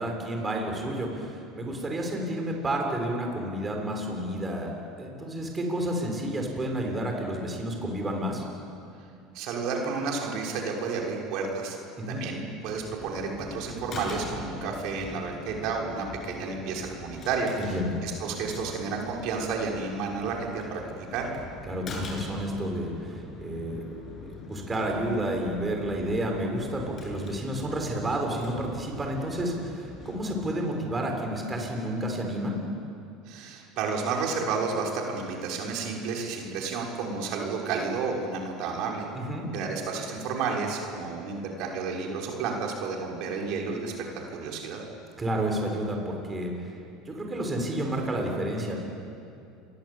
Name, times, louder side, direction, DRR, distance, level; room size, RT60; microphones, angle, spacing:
voice 1, 0.0-4.7 5.0-8.4 12.0-12.2 17.6-17.9 21.7-23.8 24.5-32.6 39.1-39.5 45.2-46.7 47.0-48.8, right 1 dB, 20° right, 1 dB, 6.8 m, -30 dB
voice 2, 9.3-11.8 12.1-21.3 33.3-39.1 39.5-44.8, right 4 dB, 60° right, -1 dB, 6.1 m, -31 dB
sound 1, 12.6-30.2, left 3 dB, 35° left, 8.0 m, -43 dB
28.5 x 23.5 x 8.8 m, 2.6 s
supercardioid pair, 120°, 0 cm